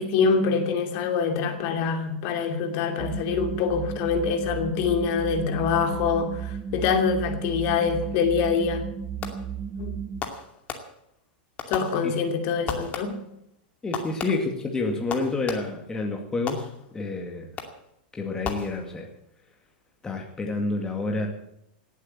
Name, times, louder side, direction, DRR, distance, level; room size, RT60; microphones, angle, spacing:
voice 1, 0.0-8.8 9.8-9.9 11.7-13.2, left 5 dB, 50° left, 5 dB, 2.8 m, -25 dB
sound 1, 3.0-10.2, right 7 dB, 25° right, 1.3 m, -34 dB
Fireworks, 9.2-9.7 10.2-11.2 11.6-12.4 12.7-13.4 13.9-15.9 16.5-17.1 17.6-18.0 18.4-19.2, left 6 dB, 30° left, 2.4 m, -36 dB
voice 2, 13.8-17.5 18.1-19.1 20.0-21.3, left 3 dB, 10° left, 2 dB, 2.1 m, -29 dB
18.0 x 8.3 x 8.8 m, 0.76 s
supercardioid pair, 135°, 5 cm